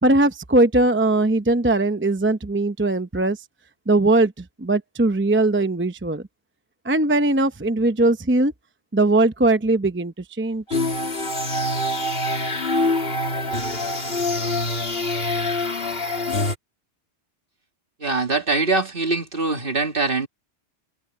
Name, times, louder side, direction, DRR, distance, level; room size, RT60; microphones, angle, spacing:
voice 1, 0.0-3.4 3.9-6.2 6.8-8.5 8.9-10.8, right 2 dB, 15° right, 0.7 m, -20 dB
sound 1, 10.7-16.6, left 2 dB, 55° left, 2.9 m, -25 dB
voice 2, 18.0-20.3, right 3 dB, 50° right, 2.5 m, -23 dB
omnidirectional pair, 1.2 m